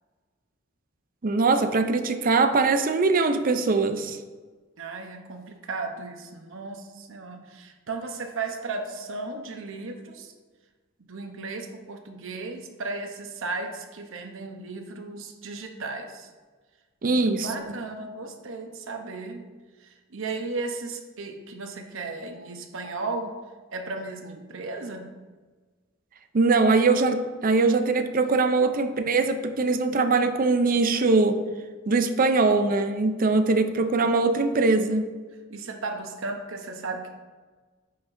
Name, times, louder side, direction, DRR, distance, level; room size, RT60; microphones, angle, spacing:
voice 1, 1.2-4.2 17.0-17.8 26.3-31.4 31.9-35.1, right 3 dB, 45° right, 8 dB, 0.5 m, -22 dB
voice 2, 4.8-10.3 11.0-16.3 17.0-19.4 19.8-23.4 23.7-25.1 35.5-37.1, right 3 dB, 70° right, 4 dB, 0.9 m, -35 dB
9.3 x 5.8 x 2.6 m, 1.4 s
head